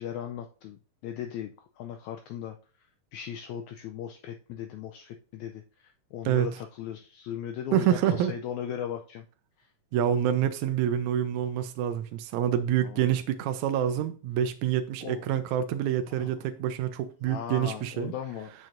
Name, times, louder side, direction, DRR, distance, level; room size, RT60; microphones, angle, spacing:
voice 1, 0.0-2.6 3.1-9.3 9.6-9.7 12.8-13.1 15.0-15.3 16.2-16.3 17.2-18.5, left 9 dB, 85° left, 1.7 m, -38 dB
voice 2, 7.7-8.3 9.9-18.1, right 10 dB, 80° right, 1.8 m, -27 dB
7.7 x 7.5 x 2.6 m
omnidirectional pair, 3.8 m